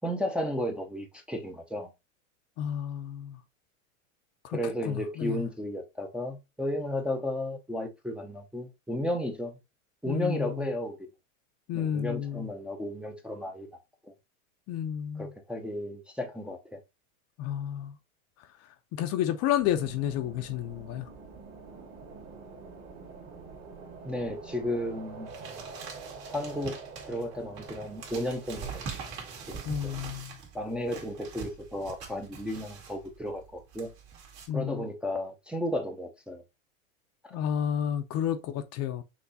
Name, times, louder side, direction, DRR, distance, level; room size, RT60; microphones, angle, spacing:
voice 1, 0.0-1.9 4.5-9.6 10.0-11.0 11.7-13.7 14.0-14.1 15.2-16.8 24.0-25.5 26.3-26.8 27.1-28.9 29.5-29.7 30.5-33.9 34.5-36.4, left 1 dB, 5° right, 0.6 m, -33 dB
voice 2, 2.6-3.4 4.4-5.5 10.1-10.7 11.7-12.5 14.7-15.3 17.4-17.9 18.9-21.1 29.6-30.4 34.5-34.8 37.3-39.0, left 10 dB, 40° left, 0.6 m, -31 dB
sound 1, 19.6-30.1, right 4 dB, 40° right, 1.9 m, -47 dB
sound 2, 25.3-34.5, right 6 dB, 55° right, 2.0 m, -43 dB
6.0 x 3.0 x 2.7 m
hypercardioid pair, 110°, 41 cm